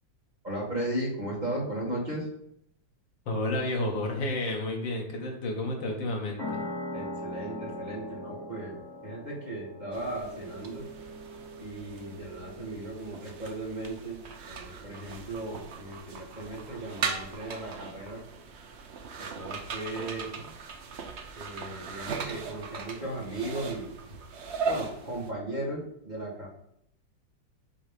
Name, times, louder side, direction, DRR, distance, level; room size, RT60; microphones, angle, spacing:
voice 1, 0.4-2.3 6.9-10.9 11.6-18.2 19.2-20.3 21.3-24.0 24.6-26.5, right 1 dB, 25° right, -4 dB, 1.7 m, -36 dB
voice 2, 3.3-6.7 19.9-20.5, left 1 dB, 75° left, 0 dB, 2.1 m, -31 dB
sound 1, 6.4-13.6, left 1 dB, 30° left, 0.4 m, -41 dB
sound 2, 9.9-25.3, right 5 dB, 60° right, 0.7 m, -39 dB
8.0 x 3.1 x 5.1 m, 0.72 s
omnidirectional pair, 2.0 m